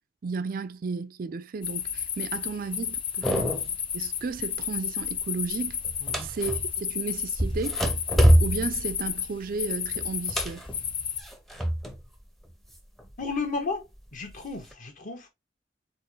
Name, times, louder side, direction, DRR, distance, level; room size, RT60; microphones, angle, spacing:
voice 1, 0.2-3.5 3.9-5.8 6.2-7.8 8.4-10.6, right 4 dB, 55° right, 0.4 m, -33 dB
sound 1, 1.6-11.2, left 8 dB, 30° left, 0.4 m, -32 dB
sound 2, 3.2-3.9 4.2-4.6 5.0-6.8 7.3-12.0 12.3-13.3 13.9-14.7, equal, ahead, 0.7 m, -26 dB
voice 2, 13.2-15.3, left 4 dB, 50° left, 1.3 m, -33 dB
4.4 x 3.8 x 3.1 m
head